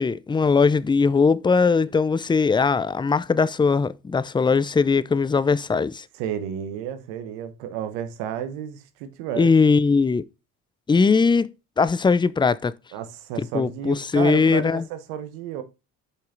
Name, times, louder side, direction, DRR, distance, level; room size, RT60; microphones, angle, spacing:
voice 1, 0.0-6.0 9.3-10.2 10.9-12.7 13.4-14.8, left 4 dB, 10° left, 0.4 m, -20 dB
voice 2, 6.1-9.5 12.9-15.6, right 9 dB, 80° right, 1.1 m, -32 dB
6.4 x 5.5 x 3.8 m
hypercardioid pair, 60°, 41 cm